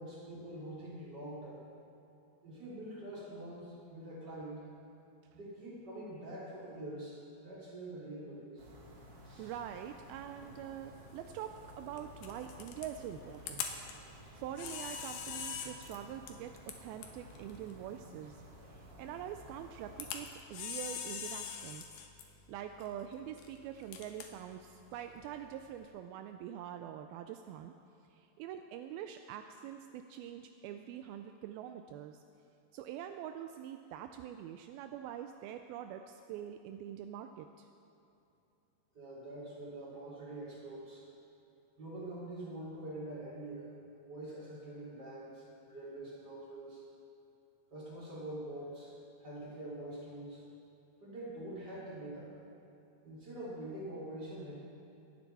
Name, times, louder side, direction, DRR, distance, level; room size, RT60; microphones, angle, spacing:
voice 1, 0.0-1.7 2.4-4.7 5.3-8.6 9.2-9.5 38.9-41.0 41.8-43.7 44.0-46.8 47.7-48.9 49.2-50.4 51.0-52.3 53.0-54.5, right 1 dB, 25° right, -7 dB, 3.8 m, -45 dB
sound 1, 8.6-20.1, equal, 45° right, 2.3 m, -54 dB
voice 2, 9.4-13.7 14.3-16.5 16.8-18.4 18.7-21.9 22.5-27.7 28.1-32.2 32.7-37.7, right 10 dB, 85° right, 7 dB, 2.1 m, -45 dB
Camera, 10.4-25.8, left 7 dB, 75° left, 2.7 m, -46 dB
24.0 x 9.0 x 4.2 m, 2.8 s
omnidirectional pair, 4.8 m